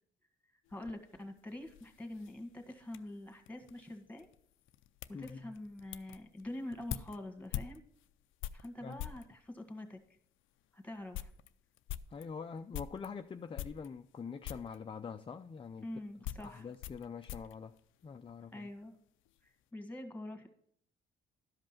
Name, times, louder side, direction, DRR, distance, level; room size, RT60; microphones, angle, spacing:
sound 1, 0.7-9.3 10.0-10.1 10.6-10.7 10.9-13.1 13.5-14.2 14.4-14.8 15.6-18.5 18.8-19.4, left 12 dB, 80° left, 0.5 m, -46 dB
voice 1, 0.7-4.3 5.2-7.8 8.5-10.0 10.7-11.3 15.8-16.7 18.5-18.9 19.7-20.5, left 1 dB, 5° left, 1.8 m, -45 dB
voice 2, 5.1-5.5 8.8-9.0 12.1-15.9 16.4-17.8 18.0-18.7, left 5 dB, 25° left, 0.5 m, -44 dB
12.5 x 5.3 x 5.8 m
cardioid pair, 90°, 20 cm